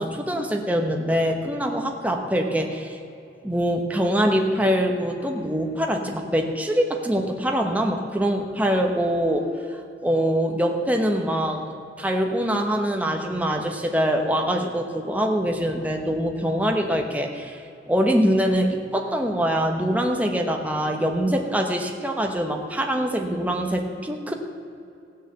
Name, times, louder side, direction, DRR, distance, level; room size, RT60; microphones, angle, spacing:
voice 1, 0.0-3.0 3.4-11.7 12.0-17.6 17.9-24.3, equal, 10° right, 2 dB, 1.0 m, -24 dB
15.5 x 6.7 x 7.9 m, 2.6 s
head